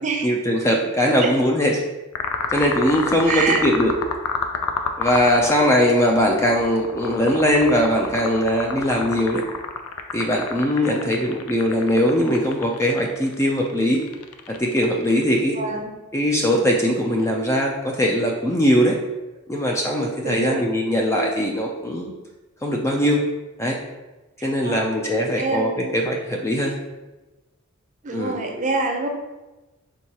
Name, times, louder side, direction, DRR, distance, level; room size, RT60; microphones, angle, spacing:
voice 1, 0.2-1.8 2.5-3.9 5.0-9.5 10.1-14.0 14.5-15.6 16.1-19.0 19.5-22.1 22.6-23.2 23.6-23.8 24.4-26.8 28.1-28.4, equal, 15° left, 0 dB, 0.3 m, -20 dB
sound 1, 2.2-15.4, left 5 dB, 85° left, 0.4 m, -30 dB
voice 2, 3.3-3.6 10.8-11.2 15.5-15.9 20.2-20.6 24.4-25.0 25.4-26.0 28.0-29.1, right 3 dB, 35° right, 2 dB, 0.5 m, -26 dB
4.5 x 3.6 x 2.8 m, 1.1 s
head